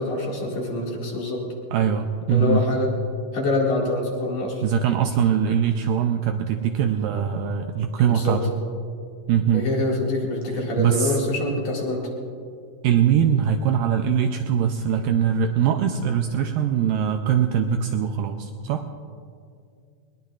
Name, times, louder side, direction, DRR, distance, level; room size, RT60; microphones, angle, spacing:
voice 1, 0.0-1.4 2.3-2.9 3.3-4.6 8.1-8.4 9.5-12.0, left 2 dB, 50° left, -3 dB, 3.0 m, -25 dB
voice 2, 1.7-2.6 4.6-8.4 9.3-9.7 10.8-11.2 12.8-18.9, right 8 dB, 80° right, 5 dB, 2.1 m, -22 dB
21.0 x 21.0 x 2.4 m, 2.3 s
omnidirectional pair, 4.4 m